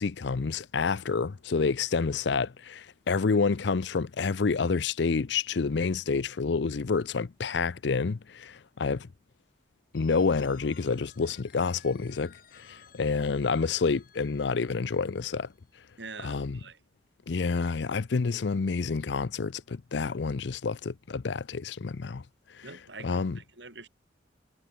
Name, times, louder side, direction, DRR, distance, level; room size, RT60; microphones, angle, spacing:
voice 1, 0.0-9.1 9.9-15.5 16.2-16.6 17.3-22.2 22.5-22.7 23.0-23.4, left 4 dB, 65° left, 0.5 m, -28 dB
Telephone, 9.9-15.7, left 7 dB, 50° left, 6.6 m, -57 dB
voice 2, 16.0-16.8 22.6-23.9, right 4 dB, 65° right, 5.1 m, -45 dB
head